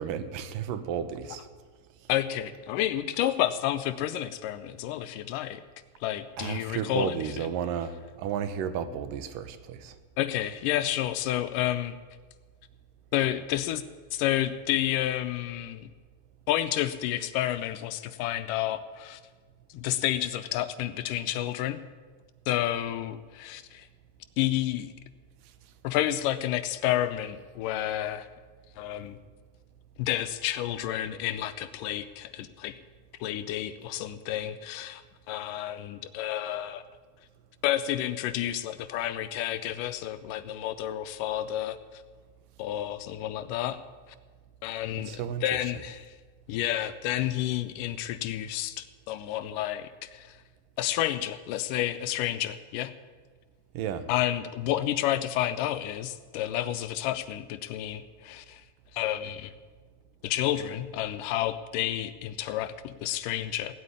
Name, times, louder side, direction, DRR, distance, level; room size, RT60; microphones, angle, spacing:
voice 1, 0.0-1.5 6.4-10.0 45.0-45.4 53.7-54.1, right 8 dB, 80° right, 11 dB, 2.6 m, -33 dB
voice 2, 2.1-5.6 6.0-7.5 10.2-12.0 13.1-13.8 14.1-15.9 16.5-19.2 19.7-21.8 22.5-23.9 24.4-24.9 25.8-28.3 28.8-29.2 30.0-32.8 33.2-35.0 35.3-36.8 37.6-42.0 42.6-43.8 44.6-46.2 46.5-50.4 50.8-52.9 54.1-58.6 58.9-59.5 60.2-63.7, left 12 dB, 80° left, 11 dB, 2.2 m, -30 dB
17.0 x 8.4 x 9.8 m, 1.4 s
omnidirectional pair, 3.9 m